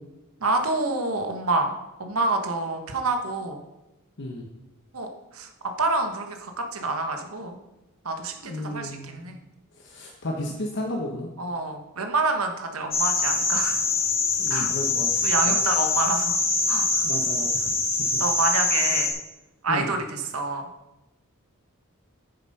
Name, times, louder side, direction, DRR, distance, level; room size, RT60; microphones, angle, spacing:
voice 1, 0.4-1.7 2.0-3.6 4.9-5.1 5.3-5.5 5.8-7.6 8.0-9.4 11.4-13.8 14.5-14.7 15.2-16.4 16.7-17.0 18.2-19.1 19.6-20.7, right 3 dB, 70° right, 5 dB, 1.2 m, -27 dB
voice 2, 8.4-9.2 9.8-11.3 14.4-15.5 17.0-17.7 18.1-18.2 19.7-19.9, left 1 dB, 55° left, 1 dB, 1.1 m, -33 dB
sound 1, 12.9-19.1, left 3 dB, 25° left, 1.7 m, -24 dB
9.1 x 7.1 x 5.4 m, 1.0 s
head